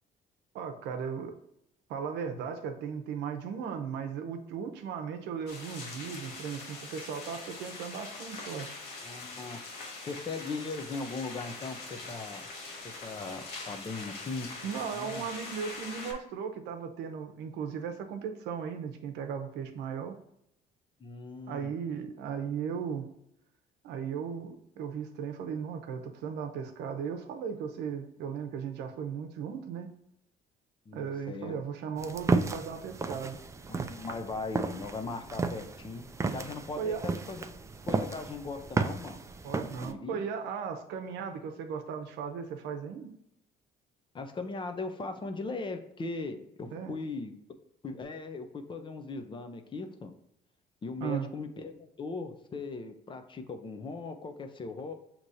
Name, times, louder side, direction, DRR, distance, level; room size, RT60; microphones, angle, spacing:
voice 1, 0.5-1.3 1.9-8.7 14.6-20.1 21.5-23.1 23.8-29.9 30.9-33.4 36.2-36.4 36.8-37.0 39.4-43.1 46.7-46.9 51.0-51.3, right 7 dB, 85° right, 6 dB, 0.7 m, -36 dB
sound 1, 5.5-16.1, left 3 dB, 85° left, 1.3 m, -43 dB
voice 2, 9.0-9.6 10.0-12.5 12.8-14.5 14.8-15.3 21.0-21.8 30.9-31.5 33.7-36.0 36.3-37.5 37.9-39.2 39.5-40.2 44.1-47.3 47.8-50.1 50.8-54.9, left 3 dB, 30° left, 6 dB, 0.6 m, -39 dB
sound 2, 32.0-39.9, right 4 dB, 15° right, 0.3 m, -33 dB
6.2 x 2.9 x 2.7 m, 0.79 s
cardioid pair, 110°, 17 cm